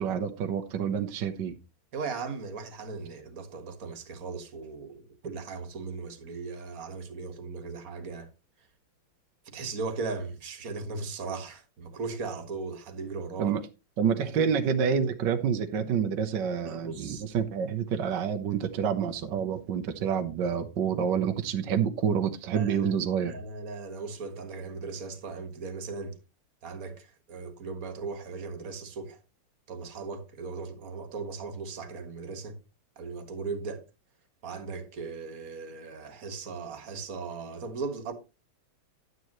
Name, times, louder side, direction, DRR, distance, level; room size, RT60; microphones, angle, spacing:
voice 1, 0.0-1.5 13.4-13.6 14.0-23.3, right 7 dB, 60° right, 1.4 m, -28 dB
voice 2, 1.9-8.3 9.5-13.6 14.3-14.5 16.6-17.2 22.5-22.9 23.2-26.2 26.6-29.2 29.7-32.6 33.0-33.8 34.4-38.1, right 4 dB, 40° right, 1.9 m, -38 dB
11.5 x 9.3 x 3.1 m
omnidirectional pair, 2.4 m